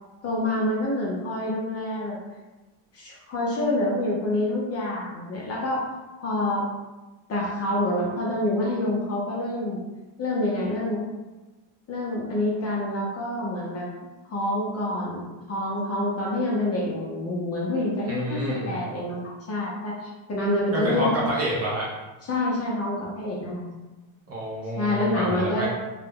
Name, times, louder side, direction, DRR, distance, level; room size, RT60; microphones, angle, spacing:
voice 1, 0.2-2.2 2.9-5.8 6.2-6.7 7.3-9.8 10.2-11.0 11.9-13.9 14.2-21.1 22.2-23.7 24.8-25.7, left 1 dB, 35° left, -4 dB, 0.4 m, -27 dB
voice 2, 18.1-18.7 20.7-21.9 24.3-25.7, equal, 35° right, -5 dB, 0.4 m, -28 dB
2.2 x 2.0 x 3.3 m, 1.1 s
cardioid pair, 155°, 49 cm